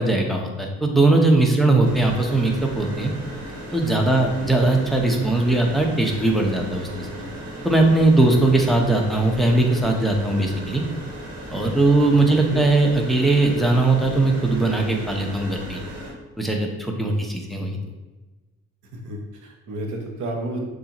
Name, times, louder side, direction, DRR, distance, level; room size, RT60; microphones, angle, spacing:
voice 1, 0.0-3.1 3.7-7.1 7.6-10.8 11.5-15.8 16.4-17.8, right 2 dB, ahead, 1 dB, 0.8 m, -19 dB
sound 1, 1.8-16.1, equal, 55° right, 1.5 m, -36 dB
voice 2, 4.2-4.6 8.3-8.6 12.1-12.6 17.1-17.2 18.9-20.6, right 1 dB, 70° right, 1 dB, 1.0 m, -33 dB
6.7 x 2.6 x 3.0 m, 1.2 s
cardioid pair, 90°, 30 cm